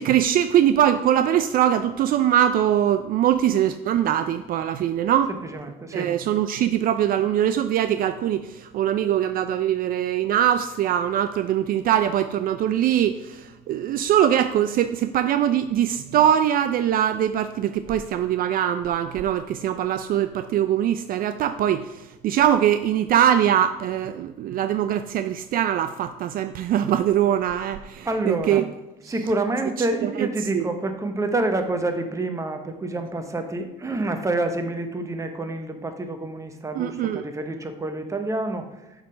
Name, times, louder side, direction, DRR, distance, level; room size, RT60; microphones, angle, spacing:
voice 1, 0.0-5.3 5.9-28.6 29.0-29.1 30.0-30.3 30.5-30.7 36.7-37.2, right 10 dB, 60° right, 10 dB, 0.4 m, -22 dB
voice 2, 5.3-6.1 28.0-28.7 29.1-38.7, right 2 dB, 20° right, 6 dB, 0.9 m, -27 dB
7.0 x 3.8 x 5.1 m, 1.1 s
cardioid pair, 110°, 17 cm